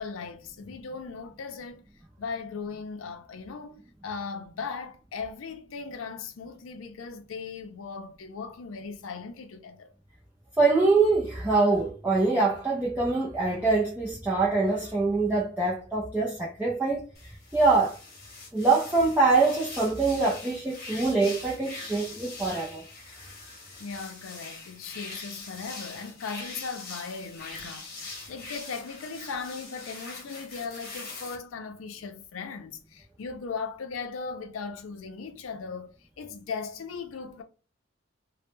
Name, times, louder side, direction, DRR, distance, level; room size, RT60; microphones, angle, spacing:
voice 1, 0.0-1.9 2.2-9.9 23.8-37.4, left 5 dB, 90° left, 0.4 m, -38 dB
voice 2, 10.6-17.1 17.5-18.0 18.5-22.8, right 3 dB, 10° right, 0.4 m, -24 dB
sound 1, 17.1-31.3, left 3 dB, 50° left, 0.8 m, -43 dB
2.1 x 2.0 x 2.9 m
head